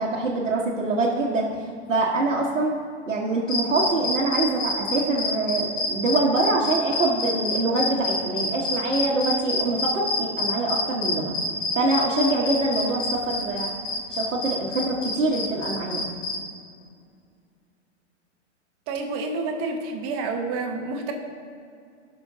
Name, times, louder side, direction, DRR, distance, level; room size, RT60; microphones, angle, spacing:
voice 1, 0.0-1.5 1.9-2.8 3.1-11.3 11.7-13.7 14.1-16.0, right 2 dB, 90° right, -5 dB, 1.4 m, -24 dB
sound 1, 3.5-16.4, left 3 dB, 25° left, 1.5 m, -27 dB
voice 2, 18.9-21.1, right 3 dB, 35° right, 3 dB, 1.4 m, -29 dB
17.5 x 6.1 x 2.8 m, 2.3 s
hypercardioid pair, 115°, 36 cm